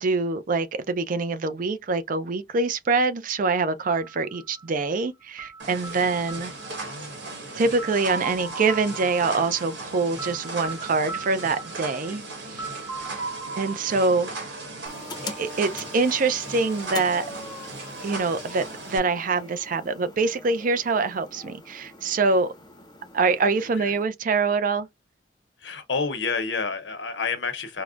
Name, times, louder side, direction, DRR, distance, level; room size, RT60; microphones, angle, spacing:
voice 1, 0.0-6.5 7.5-12.2 12.5-12.7 13.6-14.6 15.2-17.3 18.0-22.5 23.1-24.9, right 4 dB, 50° right, 0.4 m, -25 dB
sound 1, 3.9-15.7, right 3 dB, 25° right, 1.3 m, -39 dB
sound 2, 5.6-19.0, right 3 dB, 75° right, 1.5 m, -38 dB
voice 2, 6.7-7.4 23.7-23.9 25.6-27.8, left 4 dB, 85° left, 0.8 m, -30 dB
sound 3, 14.9-24.0, left 2 dB, 25° left, 0.6 m, -42 dB
4.6 x 2.1 x 2.4 m
head